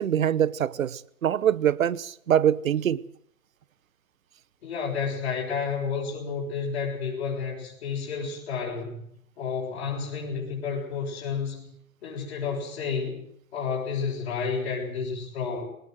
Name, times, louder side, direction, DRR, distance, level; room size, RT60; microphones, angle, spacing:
voice 1, 0.0-3.0, right 9 dB, 65° right, 1.0 m, -24 dB
voice 2, 4.6-9.0 9.4-11.7 12.0-13.2 13.5-15.7, left 5 dB, 45° left, 7.1 m, -31 dB
20.0 x 19.0 x 7.9 m
hypercardioid pair, 155°, 43 cm